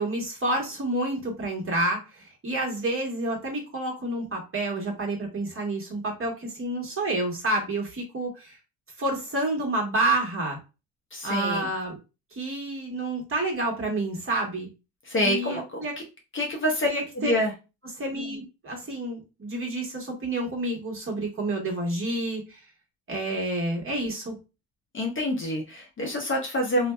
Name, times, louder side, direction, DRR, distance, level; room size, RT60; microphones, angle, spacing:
voice 1, 0.0-8.6 9.0-10.6 11.2-12.0 12.3-14.7 15.2-15.9 16.8-17.4 18.0-22.6 23.1-24.4, right 2 dB, 30° right, -1 dB, 1.2 m, -29 dB
voice 2, 11.1-11.7 15.1-16.0 16.3-16.9 17.2-17.5 24.9-26.9, left 1 dB, 30° left, 1 dB, 0.7 m, -27 dB
2.6 x 2.2 x 2.2 m, 0.28 s
supercardioid pair, 75°, 42 cm